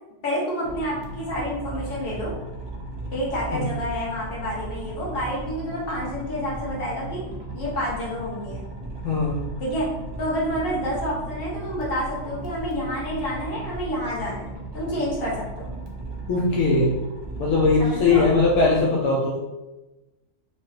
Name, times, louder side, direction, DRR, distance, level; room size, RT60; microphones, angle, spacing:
voice 1, 0.2-2.3 3.1-7.2 7.5-8.6 9.6-9.9 10.2-15.7 17.8-18.3, equal, 50° left, -5 dB, 1.1 m, -29 dB
sound 1, 0.6-18.8, right 2 dB, 45° right, 0.3 m, -36 dB
voice 2, 9.0-9.4 16.3-16.9 17.4-19.4, left 3 dB, 85° left, -4 dB, 1.0 m, -20 dB
2.9 x 2.4 x 3.1 m, 1.1 s
omnidirectional pair, 1.3 m